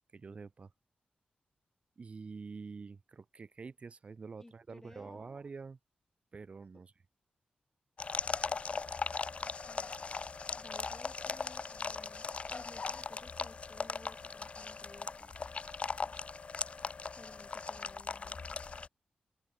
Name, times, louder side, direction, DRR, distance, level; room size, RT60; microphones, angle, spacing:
voice 1, 0.1-0.7 2.0-5.8 6.3-6.9, right 4 dB, 40° right, 0.5 m, -47 dB
voice 2, 4.4-5.3 6.7-6.8 9.6-9.9 10.6-15.4 17.1-18.4, left 2 dB, 15° left, 2.2 m, -57 dB
sound 1, 8.0-18.9, left 4 dB, 40° left, 0.4 m, -39 dB
wide cardioid pair, 130°, 3 cm